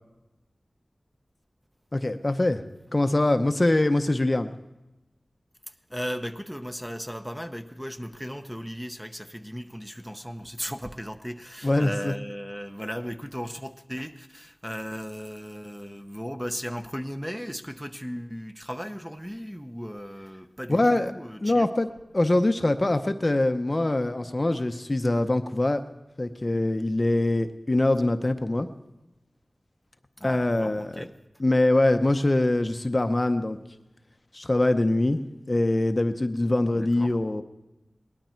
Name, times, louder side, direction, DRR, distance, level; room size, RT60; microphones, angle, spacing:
voice 1, 1.9-2.6 2.9-4.5 11.6-12.1 20.7-21.1 21.4-21.9 22.1-25.8 26.2-28.7 30.2-30.9 31.4-33.6 34.3-37.4, left 2 dB, 35° left, 8 dB, 0.7 m, -23 dB
voice 2, 5.7-21.7 30.2-31.1 36.7-37.1, equal, 5° right, 7 dB, 0.8 m, -36 dB
19.0 x 12.0 x 4.4 m, 0.99 s
wide cardioid pair, 60°, 0 cm